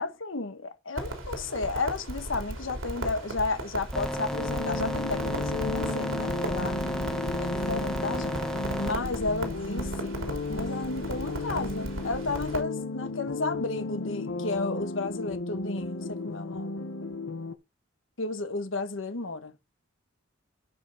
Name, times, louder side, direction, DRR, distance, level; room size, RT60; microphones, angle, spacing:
voice 1, 0.0-6.8 7.4-8.4 8.8-10.2 10.5-16.8 18.2-19.5, left 3 dB, 70° left, 1.2 m, -33 dB
Crackle, 1.0-12.6, right 1 dB, 85° right, 3.3 m, -37 dB
sound 1, 3.9-8.9, equal, 5° left, 1.2 m, -33 dB
sound 2, 4.3-17.6, left 3 dB, 85° left, 1.1 m, -34 dB
12.5 x 5.6 x 4.0 m
head